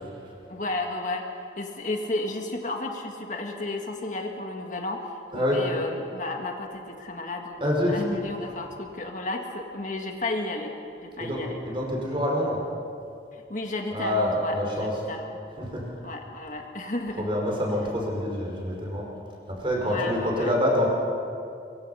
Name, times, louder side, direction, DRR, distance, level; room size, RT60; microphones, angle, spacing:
voice 1, 0.5-1.2 1.6-10.7 11.0-11.6 13.3-15.4 16.0-17.3 19.8-20.5, left 2 dB, 45° left, 2 dB, 1.8 m, -33 dB
voice 2, 5.3-5.6 7.6-8.0 11.2-12.6 13.9-15.0 15.6-15.8 17.1-19.1 19.5-20.9, left 1 dB, 30° right, -2 dB, 5.3 m, -26 dB
24.5 x 23.5 x 5.8 m, 2.5 s
head